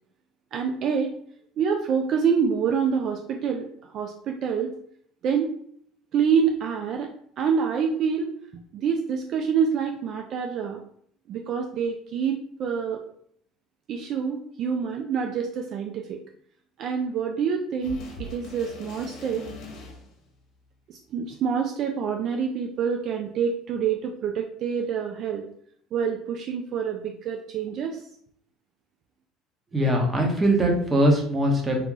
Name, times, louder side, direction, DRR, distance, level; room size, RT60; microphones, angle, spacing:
voice 1, 0.5-1.1 1.6-4.8 5.2-5.5 6.1-7.1 7.4-10.8 11.3-13.0 13.9-16.2 16.8-19.4 20.9-25.4 25.9-28.0, right 6 dB, 55° right, 3 dB, 0.3 m, -27 dB
sound 1, 17.8-20.4 21.3-21.4, left 2 dB, 65° left, 0.9 m, -41 dB
voice 2, 29.7-31.8, right 1 dB, 20° right, 1 dB, 0.9 m, -21 dB
2.9 x 2.4 x 3.7 m, 0.65 s
supercardioid pair, 105°, 0 cm